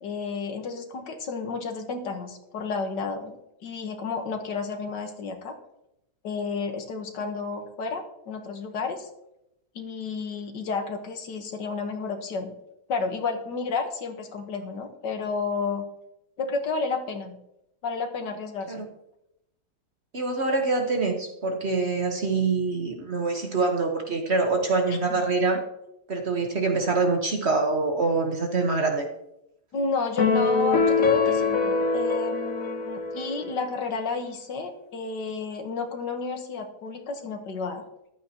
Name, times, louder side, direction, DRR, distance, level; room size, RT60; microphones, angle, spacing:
voice 1, 0.0-3.4 3.6-5.6 6.2-9.1 9.8-12.5 12.9-15.8 16.4-17.4 17.8-18.8 29.7-37.8, left 4 dB, 70° left, 5 dB, 1.8 m, -31 dB
voice 2, 20.1-25.6 26.1-29.1, right 3 dB, 40° right, 3 dB, 1.3 m, -25 dB
sound 1, 30.2-33.7, left 4 dB, 50° left, 1.6 m, -24 dB
14.5 x 12.0 x 2.9 m, 0.86 s
omnidirectional pair, 1.9 m